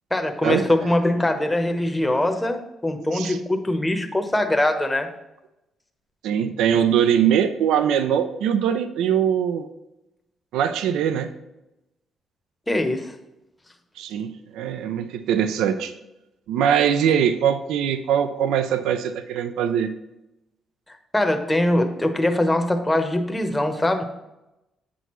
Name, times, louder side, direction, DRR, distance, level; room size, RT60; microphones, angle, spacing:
voice 1, 0.1-5.1 12.7-13.1 20.9-24.0, left 1 dB, 10° left, 6 dB, 0.8 m, -22 dB
voice 2, 6.2-9.7 10.5-11.3 14.0-15.9 16.5-19.9, right 8 dB, 90° right, 10 dB, 0.4 m, -22 dB
7.9 x 6.1 x 3.1 m, 0.94 s
cardioid pair, 90°, 0 cm